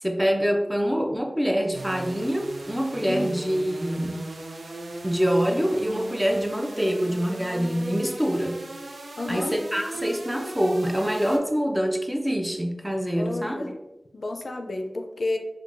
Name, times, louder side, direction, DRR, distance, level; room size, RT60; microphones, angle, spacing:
voice 1, 0.0-4.2 5.0-8.6 9.3-13.7, equal, 10° right, 2 dB, 0.5 m, -25 dB
sound 1, 1.7-11.4, right 2 dB, 90° right, 0.4 m, -38 dB
voice 2, 3.0-3.4 9.2-9.6 13.2-13.7 14.1-15.4, left 2 dB, 75° left, 4 dB, 0.3 m, -31 dB
4.5 x 2.2 x 2.5 m, 0.99 s
wide cardioid pair, 55°, 0 cm